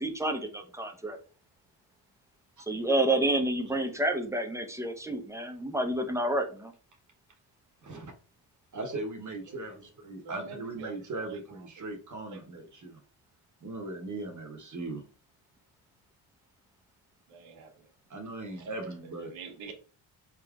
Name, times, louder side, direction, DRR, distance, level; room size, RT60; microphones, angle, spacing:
voice 1, 0.0-1.2 2.6-6.7, right 1 dB, 5° right, 5 dB, 0.7 m, -29 dB
voice 2, 7.8-8.1 8.7-13.0 13.6-15.0 18.1-19.3, right 2 dB, 40° right, 3 dB, 1.0 m, -38 dB
voice 3, 10.2-11.9 12.3-12.4 17.3-17.9 18.6-18.7 19.3-19.7, right 5 dB, 90° right, 3 dB, 1.1 m, -47 dB
4.0 x 3.6 x 2.3 m, 0.38 s
cardioid pair, 85°, 46 cm